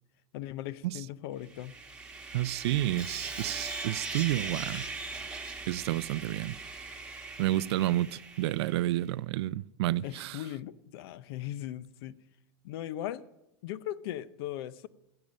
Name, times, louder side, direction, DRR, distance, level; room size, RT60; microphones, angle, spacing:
voice 1, 0.3-1.8 10.0-12.2 12.6-13.2 13.6-14.9, left 13 dB, 60° left, 0.6 m, -38 dB
Sawing, 1.5-8.9, right 3 dB, 5° right, 1.2 m, -40 dB
voice 2, 2.3-4.9 5.7-6.6 7.4-10.4, right 15 dB, 70° right, 0.4 m, -30 dB
14.0 x 8.8 x 6.3 m
supercardioid pair, 140°, 14 cm